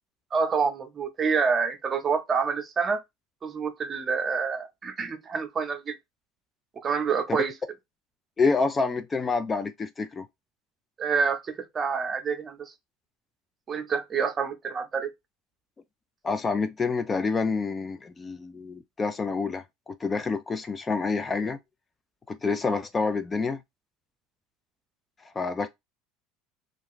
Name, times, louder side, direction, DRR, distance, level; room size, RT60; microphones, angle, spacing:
voice 1, 0.3-3.0 3.4-6.0 6.8-7.5 11.0-12.7 13.7-15.1, right 5 dB, 30° right, 0.7 m, -27 dB
voice 2, 8.4-10.3 16.2-21.6 22.3-23.6 25.4-25.7, left 4 dB, 25° left, 0.3 m, -28 dB
2.4 x 2.2 x 3.6 m
supercardioid pair, 100°, 0 cm